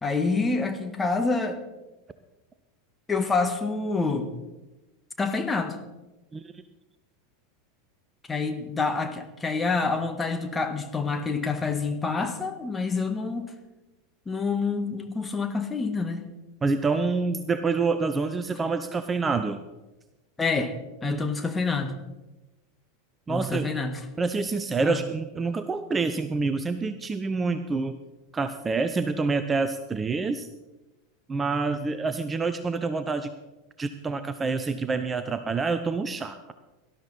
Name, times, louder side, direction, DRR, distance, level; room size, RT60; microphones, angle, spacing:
voice 1, 0.0-1.6 3.1-4.3 5.2-5.8 8.3-13.5 14.2-16.3 20.4-20.7 21.0-22.0 23.3-24.0 24.8-25.0, left 4 dB, 15° left, 7 dB, 1.6 m, -27 dB
voice 2, 16.6-19.6 21.0-21.2 23.3-23.7 24.2-28.0 28.3-30.5 31.3-33.3 33.8-36.5, right 4 dB, 20° right, 10 dB, 0.7 m, -27 dB
18.5 x 12.5 x 4.2 m, 1.1 s
figure-of-eight pair, 85°, 0 cm